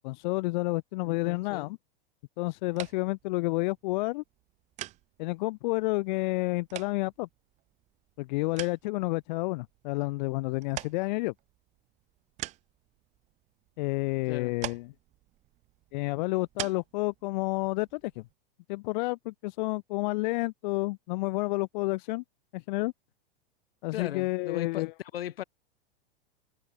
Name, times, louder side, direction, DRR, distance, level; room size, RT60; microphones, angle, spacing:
voice 1, 0.0-1.8 2.4-4.2 5.2-7.3 8.2-11.3 13.8-14.9 15.9-18.3 18.7-22.2 22.5-22.9 23.8-24.9, left 23 dB, 50° left, 0.8 m, -30 dB
voice 2, 1.0-1.7 14.3-14.5 23.9-25.4, left 11 dB, 80° left, 0.6 m, -38 dB
sound 1, 2.6-18.3, right 16 dB, 25° right, 0.4 m, -46 dB
hypercardioid pair, 105°, 29 cm